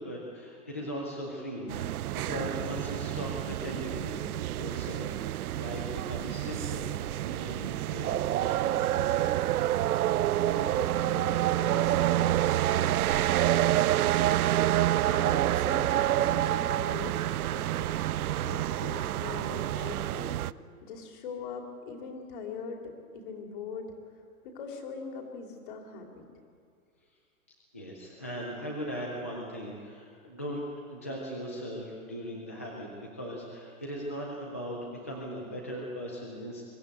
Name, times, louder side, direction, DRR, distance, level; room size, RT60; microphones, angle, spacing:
voice 1, 0.0-4.2 4.6-9.5 27.7-36.6, equal, 10° left, -3 dB, 0.4 m, -39 dB
sound 1, 1.7-20.5, right 13 dB, 85° right, 0.6 m, -28 dB
voice 2, 10.3-14.4 14.7-17.2 17.5-20.4 20.8-23.9 24.4-26.2, left 4 dB, 35° left, 3 dB, 2.7 m, -42 dB
23.0 x 13.5 x 9.2 m, 2.2 s
hypercardioid pair, 175°, 43 cm